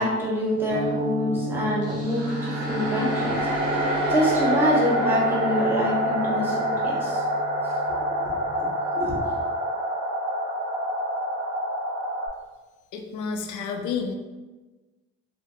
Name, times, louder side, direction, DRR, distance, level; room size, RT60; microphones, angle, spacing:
voice 1, 0.0-7.2 7.6-8.2 8.6-8.7 8.9-9.2, equal, 5° right, -7 dB, 1.1 m, -26 dB
sound 1, 0.7-9.1, right 1 dB, 30° right, 0.5 m, -35 dB
sound 2, 1.8-12.3, equal, 80° right, 0.9 m, -26 dB
voice 2, 12.9-14.2, left 5 dB, 85° left, 4 dB, 0.5 m, -30 dB
2.8 x 2.6 x 2.6 m, 1.2 s
cardioid pair, 90°, 30 cm